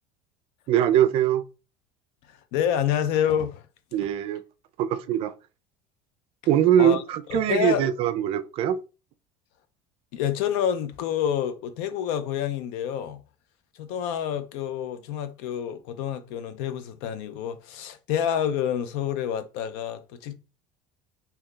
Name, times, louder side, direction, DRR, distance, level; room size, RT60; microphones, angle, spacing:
voice 1, 0.7-1.4 3.9-4.4 4.8-5.3 6.5-8.8, right 10 dB, 55° right, 0.4 m, -22 dB
voice 2, 2.3-3.6 6.8-7.0 7.3-7.9 10.1-13.2 13.8-20.3, left 9 dB, 75° left, 0.5 m, -28 dB
2.7 x 2.2 x 3.7 m
supercardioid pair, 125°, 12 cm